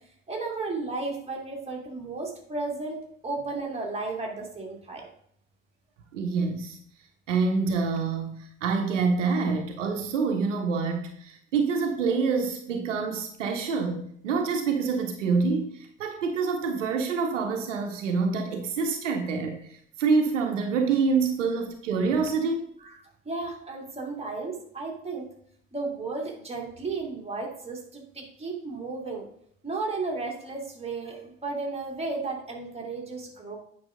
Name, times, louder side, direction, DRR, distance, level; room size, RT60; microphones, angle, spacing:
voice 1, 0.3-5.1 22.8-23.0 23.2-25.3 25.7-29.3 29.6-33.5, right 3 dB, 15° right, -1 dB, 2.6 m, -34 dB
voice 2, 6.1-6.8 7.3-22.7, right 4 dB, 80° right, 5 dB, 0.9 m, -26 dB
8.8 x 5.7 x 3.7 m, 0.66 s
figure-of-eight pair, 60°, 37 cm